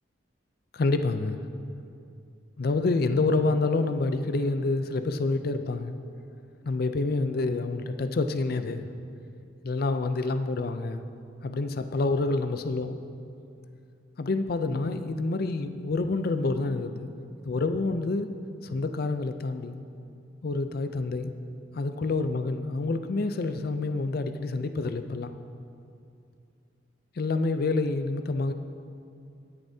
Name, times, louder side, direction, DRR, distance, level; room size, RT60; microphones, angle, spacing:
voice 1, 0.7-1.4 2.6-5.9 6.6-8.9 9.6-11.0 11.4-13.0 14.2-17.1 17.5-18.3 18.6-19.8 20.4-21.3 21.7-25.3 27.2-28.5, left 3 dB, 50° left, 9 dB, 0.5 m, -27 dB
19.5 x 6.8 x 2.8 m, 2.5 s
head